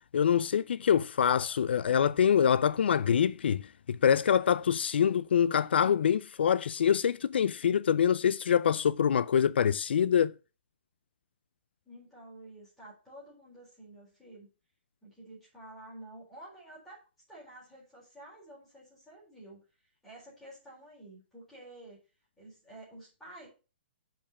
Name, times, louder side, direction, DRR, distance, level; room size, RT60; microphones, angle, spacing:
voice 1, 0.1-10.3, left 8 dB, 65° left, 0.3 m, -25 dB
voice 2, 11.9-14.5 15.0-17.0 17.3-19.6 20.0-22.0 22.4-23.5, right 1 dB, ahead, 4.0 m, -50 dB
7.0 x 5.1 x 6.9 m
hypercardioid pair, 180°, 6 cm